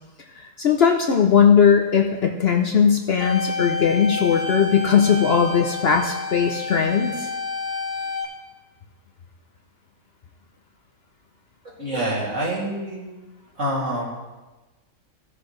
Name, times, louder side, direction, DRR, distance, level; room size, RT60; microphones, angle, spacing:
voice 1, 0.6-7.3, left 7 dB, 55° left, 2 dB, 0.8 m, -18 dB
sound 1, 3.2-8.2, left 4 dB, 35° left, 1.8 m, -29 dB
voice 2, 11.8-13.1 13.5-14.1, right 1 dB, 55° right, -6 dB, 3.0 m, -26 dB
16.5 x 7.0 x 3.2 m, 1.2 s
omnidirectional pair, 1.5 m